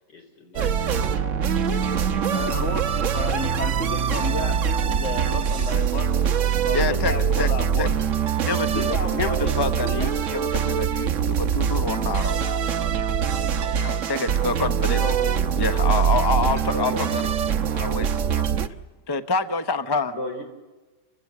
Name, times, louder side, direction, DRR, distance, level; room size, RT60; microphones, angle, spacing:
voice 1, 0.1-1.4 16.4-17.0 20.1-20.4, left 1 dB, 75° left, 3 dB, 5.1 m, -36 dB
sound 1, 0.6-18.7, right 7 dB, 55° right, 1.1 m, -23 dB
voice 2, 2.3-6.1 6.6-7.9 8.7-10.1 15.0-15.4 15.9-16.0, left 4 dB, 45° left, 8 dB, 1.5 m, -32 dB
voice 3, 6.7-7.5 7.8-7.9 8.4-8.9 9.2-12.4 13.8-15.1 15.6-17.2 17.7-18.5 19.1-20.1, left 3 dB, 25° left, 11 dB, 0.6 m, -27 dB
29.0 x 16.5 x 8.4 m, 1.2 s
omnidirectional pair, 1.9 m